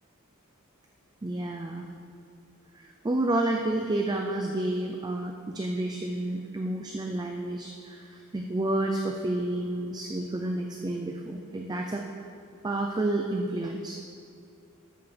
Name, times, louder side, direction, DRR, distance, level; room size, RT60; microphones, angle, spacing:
voice 1, 1.2-1.9 2.7-12.0 12.6-13.9, right 1 dB, 20° right, 2 dB, 0.4 m, -30 dB
13.0 x 7.0 x 3.3 m, 2.4 s
head